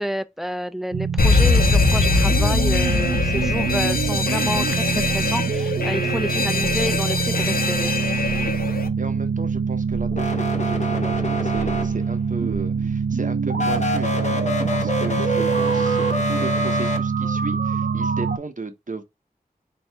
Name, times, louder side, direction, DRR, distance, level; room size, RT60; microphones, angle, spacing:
voice 1, 0.0-7.9, equal, ahead, 0.4 m, -29 dB
sound 1, 0.9-18.4, right 6 dB, 80° right, 0.5 m, -24 dB
Alarm, 1.2-8.9, left 3 dB, 70° left, 0.6 m, -22 dB
voice 2, 8.3-8.7 9.0-19.0, right 3 dB, 55° right, 0.8 m, -35 dB
sound 2, 10.1-12.3 13.5-17.0, equal, 50° left, 1.0 m, -26 dB
4.1 x 2.8 x 3.3 m
wide cardioid pair, 45°, 16 cm